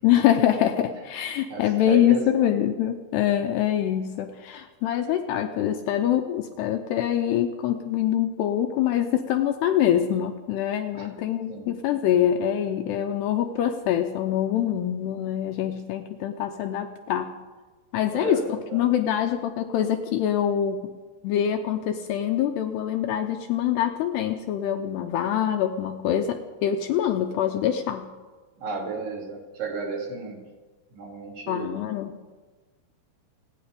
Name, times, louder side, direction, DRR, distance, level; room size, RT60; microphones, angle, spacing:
voice 1, 0.0-17.3 17.9-20.9 21.2-28.1 31.5-32.2, left 10 dB, 80° left, 5 dB, 2.5 m, -24 dB
voice 2, 1.5-2.5 10.9-11.1 11.5-11.7 18.1-18.9 28.6-30.4 30.9-31.7, right 4 dB, 65° right, 0 dB, 4.4 m, -34 dB
29.0 x 9.7 x 5.2 m, 1.3 s
omnidirectional pair, 5.4 m